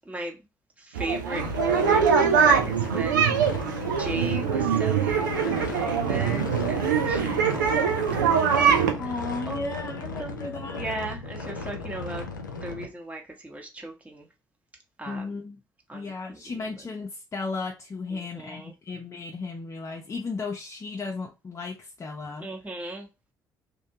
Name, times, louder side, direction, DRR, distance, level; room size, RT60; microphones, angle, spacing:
voice 1, 0.1-0.4 0.9-3.3 4.0-8.8 9.5-12.2 12.6-14.3 15.0-15.3 15.9-16.4 18.2-18.7 22.4-23.1, right 1 dB, 15° right, 1.0 m, -37 dB
sound 1, 1.0-8.9, right 7 dB, 80° right, 0.4 m, -23 dB
sound 2, 1.3-12.9, left 3 dB, 85° left, 0.4 m, -35 dB
voice 2, 9.0-10.9 15.1-15.6 15.9-22.5, left 4 dB, 30° left, 0.5 m, -35 dB
2.5 x 2.1 x 2.8 m
figure-of-eight pair, 45°, 10 cm